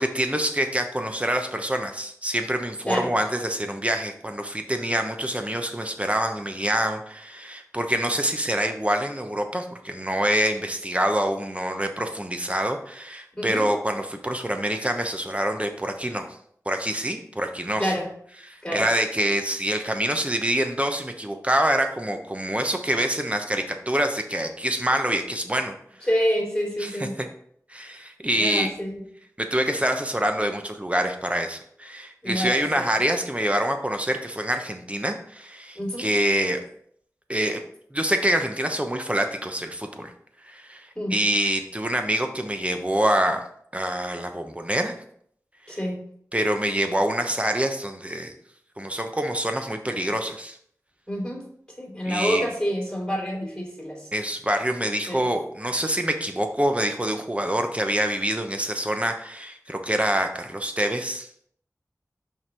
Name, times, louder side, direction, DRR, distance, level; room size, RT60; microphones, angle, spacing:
voice 1, 0.0-16.3 16.7-17.9 18.5-25.8 26.8-26.9 27.2-27.3 27.7-28.7 29.4-36.6 37.3-37.6 37.9-40.1 40.4-43.4 43.7-44.9 45.7-45.8 46.3-48.3 48.8-50.6 52.1-52.5 54.1-61.3, right 1 dB, 20° right, 5 dB, 0.9 m, -26 dB
voice 2, 13.3-13.7 17.8-18.1 18.6-18.8 26.1-27.2 28.4-29.0 32.2-33.0 35.7-36.1 40.9-41.2 45.7-46.0 51.1-51.4 51.8-54.0 55.1-55.2, equal, 10° left, -2 dB, 3.0 m, -27 dB
5.6 x 4.7 x 4.3 m, 0.65 s
wide cardioid pair, 45°, 6 cm